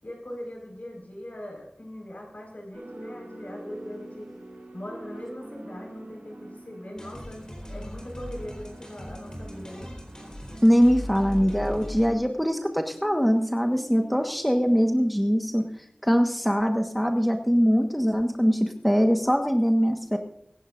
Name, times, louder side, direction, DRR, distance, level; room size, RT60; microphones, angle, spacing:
voice 1, 0.0-4.3 4.7-9.9, left 1 dB, 60° left, 0 dB, 4.9 m, -41 dB
sound 1, 2.7-16.1, right 1 dB, 85° right, 4.7 m, -45 dB
sound 2, 7.0-12.2, equal, 25° left, 4.1 m, -39 dB
voice 2, 10.6-15.7 16.0-20.2, equal, ahead, 4 dB, 1.4 m, -22 dB
23.5 x 11.5 x 2.6 m, 0.70 s
wide cardioid pair, 45°, 3 cm